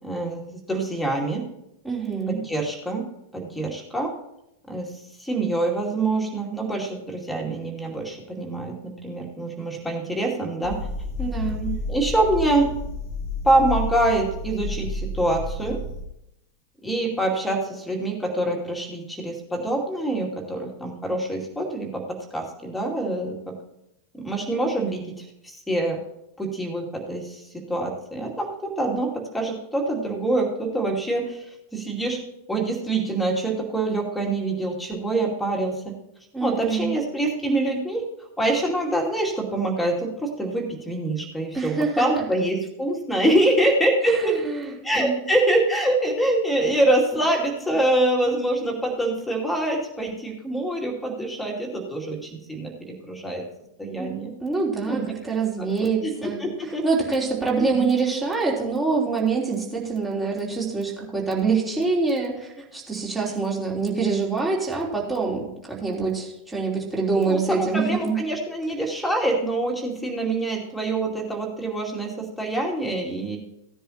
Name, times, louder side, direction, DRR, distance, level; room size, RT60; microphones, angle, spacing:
voice 1, 0.0-1.4 2.3-3.0 3.3-4.1 4.7-4.9 5.2-10.8 11.9-12.7 13.4-15.8 16.8-23.5 24.1-26.0 26.4-31.4 31.7-32.2 32.5-35.9 36.4-38.0 38.4-44.4 44.8-53.4 53.8-54.3 54.9-55.0 55.6-56.8 57.6-57.9 67.1-73.4, right 1 dB, 5° left, 0 dB, 2.5 m, -25 dB
voice 2, 1.8-2.4 11.2-11.8 36.3-36.9 41.5-42.0 44.0-44.6 45.0-45.2 54.0-54.1 54.4-56.4 56.8-68.1, right 4 dB, 10° right, -3 dB, 3.2 m, -25 dB
sound 1, 10.6-16.0, left 2 dB, 45° left, 1.6 m, -31 dB
16.5 x 10.0 x 2.9 m, 0.84 s
figure-of-eight pair, 90°, 0 cm